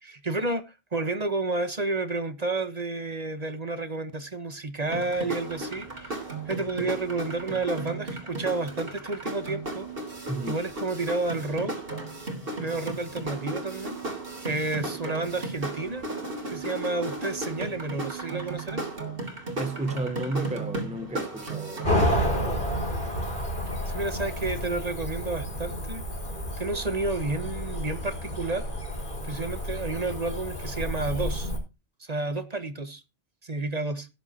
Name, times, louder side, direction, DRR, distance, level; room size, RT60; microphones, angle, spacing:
voice 1, 0.0-9.9 10.5-11.7 12.6-14.0 14.4-16.1 16.5-18.9 23.9-26.0 26.6-28.7 29.2-31.5 32.0-33.0 33.4-34.1, right 3 dB, 40° right, 1.4 m, -31 dB
sound 1, 4.8-22.2, right 2 dB, 60° right, 3.6 m, -35 dB
voice 2, 10.3-10.6 19.6-22.6, right 2 dB, 5° right, 0.9 m, -33 dB
Cricket / Motor vehicle (road), 21.8-31.6, equal, 50° left, 5.3 m, -30 dB
17.5 x 9.1 x 2.9 m
omnidirectional pair, 1.1 m